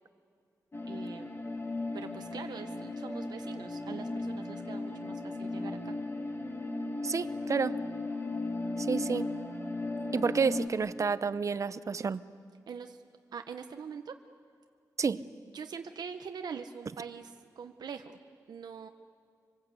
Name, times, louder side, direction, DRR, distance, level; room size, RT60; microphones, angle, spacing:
sound 1, 0.7-10.7, left 2 dB, 35° left, 2.2 m, -36 dB
voice 1, 0.9-1.4 1.9-5.9 12.7-13.0 13.3-14.2 15.5-18.2 18.5-18.9, right 6 dB, 85° right, 6 dB, 0.9 m, -43 dB
voice 2, 7.0-7.9 8.8-9.3 10.1-12.2 15.0-15.2, right 5 dB, 50° right, 14 dB, 0.7 m, -30 dB
25.5 x 24.5 x 8.3 m, 2.3 s
wide cardioid pair, 115°, 7 cm